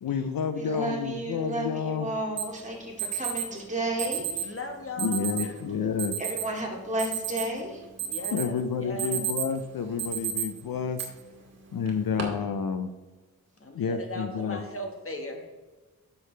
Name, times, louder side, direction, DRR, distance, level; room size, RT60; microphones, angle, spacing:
voice 1, 0.0-2.1 5.0-6.1 8.3-11.0 11.7-12.9 13.7-14.6, left 6 dB, 65° left, 10 dB, 0.7 m, -29 dB
voice 2, 0.5-4.6 6.2-7.8, right 1 dB, 20° right, -2 dB, 2.5 m, -32 dB
Alarm, 2.4-2.5 3.0-3.5 4.0-4.5 5.0-5.5 6.0-6.4 6.8-7.6 8.0-8.5 8.8-9.6 10.0-10.4 11.0-11.1 11.9-12.2, right 10 dB, 45° right, 2.3 m, -31 dB
voice 3, 4.4-5.7 8.0-9.2 13.6-15.4, left 1 dB, 35° left, 4 dB, 1.5 m, -38 dB
9.8 x 7.1 x 3.3 m, 1.3 s
cardioid pair, 90°, 36 cm